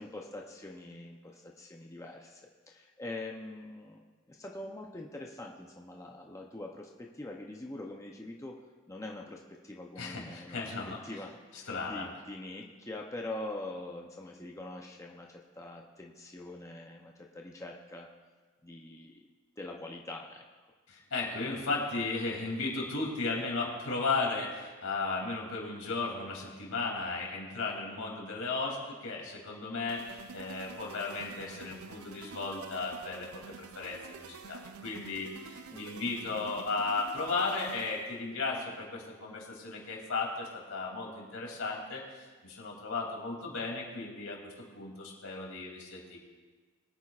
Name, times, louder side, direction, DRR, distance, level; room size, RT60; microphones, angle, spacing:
voice 1, 0.0-2.4 2.7-8.6 8.9-10.7 11.0-18.1 18.6-19.2 19.6-20.5 35.7-36.1, left 2 dB, 15° left, 0 dB, 0.6 m, -44 dB
voice 2, 10.0-11.0 11.5-12.1 20.9-46.2, left 3 dB, 85° left, -1 dB, 2.8 m, -35 dB
sound 1, 29.9-38.2, right 5 dB, 85° right, 0.5 m, -49 dB
22.0 x 8.9 x 2.4 m, 1.4 s
head